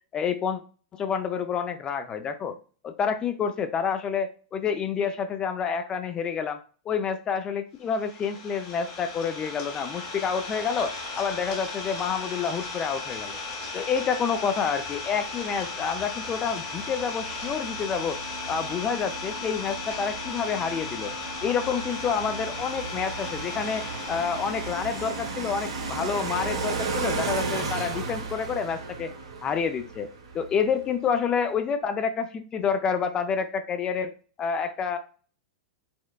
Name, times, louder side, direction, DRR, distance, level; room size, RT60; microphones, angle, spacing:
voice 1, 0.1-0.6 0.9-2.6 2.8-6.6 6.9-13.4 13.7-18.2 18.5-21.1 21.4-29.1 29.4-30.1 30.3-34.1 34.4-35.0, left 6 dB, 25° left, 8 dB, 0.3 m, -28 dB
Idling, 7.9-25.6, left 3 dB, 50° left, 1.4 m, -36 dB
sound 1, 14.8-30.9, right 4 dB, 80° right, 0.8 m, -35 dB
4.3 x 2.1 x 2.3 m, 0.41 s
hypercardioid pair, 105°, 3 cm